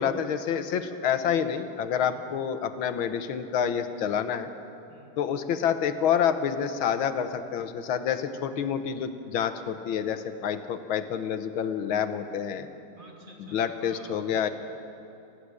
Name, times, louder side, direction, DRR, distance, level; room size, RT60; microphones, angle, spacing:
voice 1, 0.0-4.5 5.2-12.7 13.4-14.5, left 8 dB, 80° left, 10 dB, 1.8 m, -28 dB
voice 2, 12.9-14.5, right 1 dB, 25° right, -1 dB, 3.1 m, -50 dB
18.5 x 15.0 x 9.7 m, 2.8 s
omnidirectional pair, 2.2 m